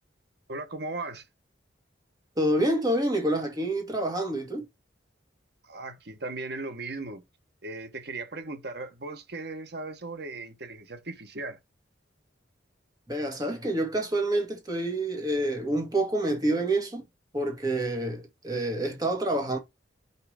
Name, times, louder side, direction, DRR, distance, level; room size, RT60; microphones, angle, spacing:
voice 1, 0.5-1.3 5.6-7.2 7.6-11.6, right 3 dB, 60° right, 1.2 m, -37 dB
voice 2, 2.4-4.7 13.1-17.1 17.3-19.6, right 1 dB, 20° right, 1.9 m, -27 dB
5.5 x 4.7 x 4.9 m
head